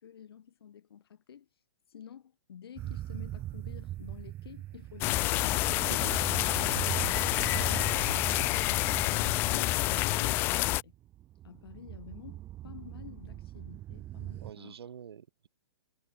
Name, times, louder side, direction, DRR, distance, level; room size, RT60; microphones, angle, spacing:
voice 1, 0.0-5.7 7.3-10.9 11.4-14.9, left 9 dB, 70° left, 5.5 m, -50 dB
sound 1, 2.8-14.5, right 14 dB, 15° right, 1.0 m, -40 dB
sound 2, 5.0-10.8, left 20 dB, 15° left, 0.4 m, -28 dB
voice 2, 5.9-6.3 7.4-7.6 14.4-15.5, right 8 dB, 75° right, 3.5 m, -46 dB
hypercardioid pair, 165°, 13 cm